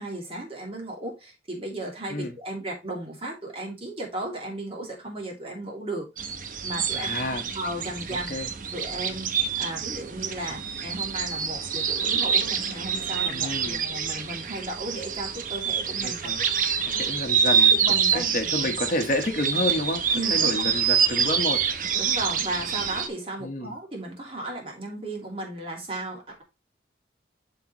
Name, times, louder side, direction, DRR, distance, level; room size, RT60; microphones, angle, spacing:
voice 1, 0.0-6.1 6.6-7.1 7.5-8.4 8.7-9.3 9.6-17.0 17.5-19.0 20.1-20.7 21.9-26.4, right 1 dB, 30° right, 2.7 m, -35 dB
sound 1, 6.2-23.1, right 7 dB, 50° right, 0.9 m, -26 dB
voice 2, 6.9-7.4 8.3-8.5 13.3-13.8 16.0-16.4 17.0-17.8 18.1-20.0 20.3-21.6 23.4-23.7, left 1 dB, 45° left, 1.2 m, -29 dB
11.5 x 3.9 x 3.0 m
head